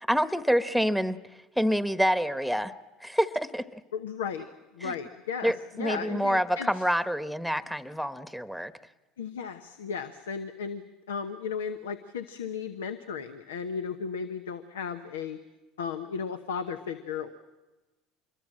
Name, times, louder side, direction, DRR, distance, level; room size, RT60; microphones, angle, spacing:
voice 1, 0.1-1.2 1.6-2.7 3.0-3.8 4.8-4.9 5.4-8.7, equal, ahead, 13 dB, 1.2 m, -27 dB
voice 2, 3.9-4.5 4.7-6.7 9.2-15.4 15.8-17.3, left 6 dB, 90° left, 10 dB, 1.0 m, -35 dB
26.0 x 22.0 x 7.6 m, 1.2 s
hypercardioid pair, 80°, 0 cm